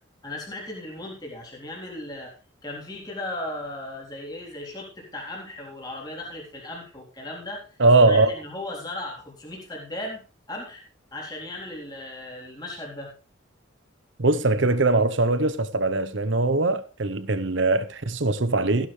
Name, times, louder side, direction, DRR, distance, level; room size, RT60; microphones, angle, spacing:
voice 1, 0.2-2.4 2.6-7.8 8.1-10.2 10.5-10.8 11.1-13.1, left 1 dB, 20° left, 3.8 m, -36 dB
voice 2, 7.8-8.3 14.2-18.9, right 2 dB, 65° right, 1.0 m, -21 dB
15.0 x 11.0 x 3.3 m
head